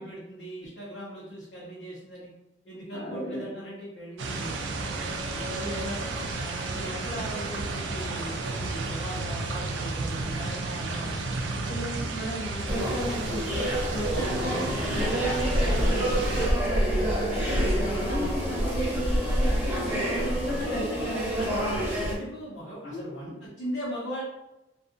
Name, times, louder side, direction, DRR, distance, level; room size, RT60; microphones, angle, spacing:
voice 1, 0.0-2.3 2.6-6.0 6.3-11.5 18.2-18.3 19.8-20.8 21.3-24.2, equal, 80° left, -9 dB, 1.0 m, -39 dB
voice 2, 2.9-3.4 11.5-21.6 22.8-23.3, right 1 dB, 55° left, -7 dB, 0.8 m, -34 dB
sound 1, 4.2-16.5, right 3 dB, 85° right, 0.4 m, -33 dB
sound 2, 12.7-22.2, equal, 10° right, 0.8 m, -27 dB
2.6 x 2.5 x 2.5 m, 0.93 s
head